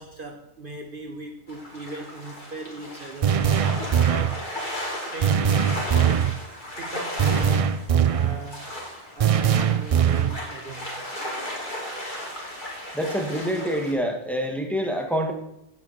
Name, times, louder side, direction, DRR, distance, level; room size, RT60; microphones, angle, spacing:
voice 1, 0.0-3.4 3.8-4.5 5.1-6.3 6.8-8.7 9.2-11.0, right 2 dB, 50° right, 4 dB, 1.3 m, -39 dB
sound 1, 1.5-13.9, left 1 dB, 45° left, 3.3 m, -35 dB
sound 2, 3.2-4.4 5.2-6.4 7.2-8.4 9.2-10.4, right 8 dB, 65° right, 0.3 m, -21 dB
voice 2, 12.9-15.3, equal, ahead, 2 dB, 2.0 m, -26 dB
16.0 x 9.0 x 4.4 m, 0.84 s
omnidirectional pair, 1.2 m